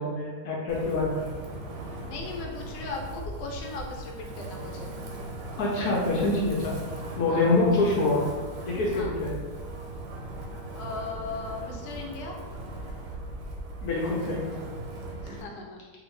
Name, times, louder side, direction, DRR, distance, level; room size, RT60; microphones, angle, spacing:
voice 1, 0.0-1.4 5.6-6.7 7.2-8.2 8.6-9.4 13.8-14.5, left 2 dB, 70° left, -4 dB, 1.0 m, -25 dB
Wind, 0.7-15.4, right 1 dB, 80° right, 1.2 m, -38 dB
voice 2, 2.1-4.9 7.3-7.5 8.9-9.1 10.7-12.3 15.2-15.8, left 3 dB, 90° left, 1 dB, 1.2 m, -38 dB
2.7 x 2.4 x 3.1 m, 1.4 s
omnidirectional pair, 1.8 m